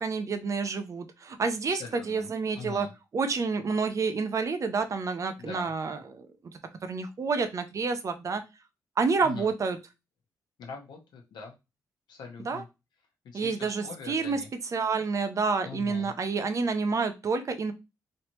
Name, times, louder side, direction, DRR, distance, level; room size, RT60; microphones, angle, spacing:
voice 1, 0.0-2.9 3.1-6.3 6.8-8.4 9.0-9.8 12.5-12.6 13.3-14.4 14.7-17.7, right 4 dB, 45° right, 9 dB, 0.6 m, -29 dB
voice 2, 1.7-2.3 2.5-2.9 5.4-5.7 9.2-9.5 10.6-11.5 12.1-12.7 13.2-14.5 15.6-16.1, left 5 dB, 80° left, 2 dB, 1.0 m, -42 dB
3.3 x 2.9 x 3.0 m, 0.25 s
cardioid pair, 90°, 8 cm